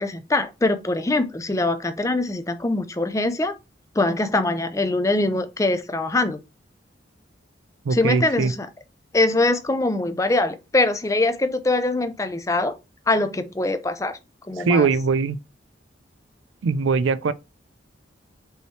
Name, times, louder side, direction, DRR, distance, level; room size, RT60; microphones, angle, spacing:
voice 1, 0.0-3.5 4.0-6.4 7.9-8.7 9.1-12.7 13.1-14.2 14.5-14.9, left 2 dB, 15° left, 0.4 m, -23 dB
voice 2, 7.8-8.5 14.6-15.4 16.6-17.3, right 4 dB, 85° right, 0.4 m, -21 dB
5.4 x 3.0 x 3.2 m
head